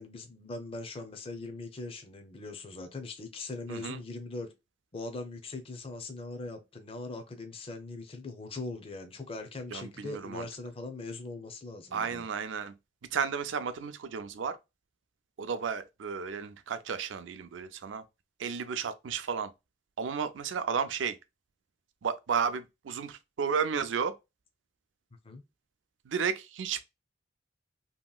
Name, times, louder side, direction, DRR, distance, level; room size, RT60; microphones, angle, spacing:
voice 1, 0.0-4.5 4.9-12.3 25.2-25.4, left 3 dB, 30° left, 0.5 m, -41 dB
voice 2, 3.7-4.0 9.7-10.4 11.9-12.7 13.1-14.6 15.4-18.0 18.4-19.5 20.0-21.2 22.0-24.1 26.0-26.8, right 6 dB, 85° right, 0.4 m, -33 dB
2.9 x 2.8 x 2.2 m
head